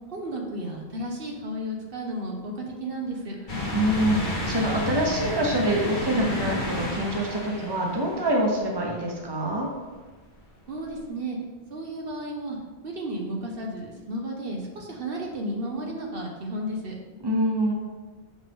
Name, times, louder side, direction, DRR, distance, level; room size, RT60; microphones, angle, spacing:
voice 1, 0.1-3.4 10.7-11.4 11.7-12.6 12.8-16.9, right 1 dB, 65° right, 0 dB, 1.1 m, -33 dB
sound 1, 3.5-9.0 9.5-9.6 11.0-11.1, left 2 dB, 50° left, 1.3 m, -31 dB
voice 2, 3.7-9.7 17.2-17.7, right 1 dB, 25° right, -1 dB, 1.1 m, -25 dB
6.8 x 5.2 x 3.6 m, 1.3 s
omnidirectional pair, 1.0 m